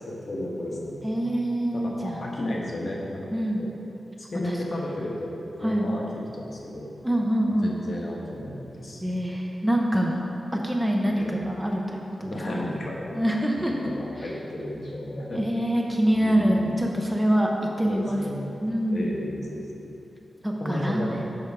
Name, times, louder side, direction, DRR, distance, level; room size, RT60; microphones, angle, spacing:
voice 1, 0.1-1.3 1.7-3.3 3.6-3.7 4.3-6.0 6.3-6.9 7.6-9.1 11.1-11.4 12.2-13.2 13.6-15.7 16.1-16.7 17.8-18.5 18.9-19.9 20.6-21.2, left 1 dB, 50° left, -3 dB, 1.1 m, -33 dB
voice 2, 1.0-2.2 3.3-3.7 4.4-4.6 5.6-5.9 7.0-7.7 9.0-12.6 13.1-13.7 14.2-14.3 15.3-17.5 17.8-18.2 18.6-19.1 20.4-21.2, equal, 10° right, 0 dB, 0.5 m, -25 dB
6.8 x 5.9 x 4.7 m, 2.8 s
wide cardioid pair, 140°, 0 cm